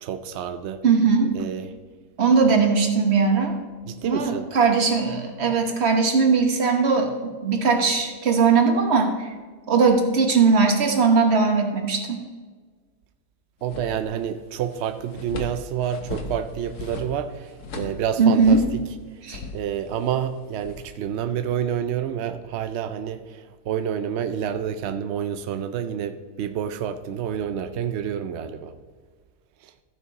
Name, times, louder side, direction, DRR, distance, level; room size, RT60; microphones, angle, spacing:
voice 1, 0.0-0.8 1.3-1.7 3.9-4.5 13.6-18.8 19.5-28.7 29.6-29.7, right 9 dB, 85° right, 9 dB, 0.5 m, -28 dB
voice 2, 0.8-1.3 2.2-3.6 4.0-9.3 9.7-12.2 18.2-18.6 19.2-19.4, right 5 dB, 45° right, 4 dB, 1.3 m, -19 dB
sound 1, 13.6-14.4 14.7-18.9 19.3-21.0, left 3 dB, 70° left, 1.6 m, -37 dB
14.5 x 6.1 x 4.0 m, 1.5 s
omnidirectional pair, 1.8 m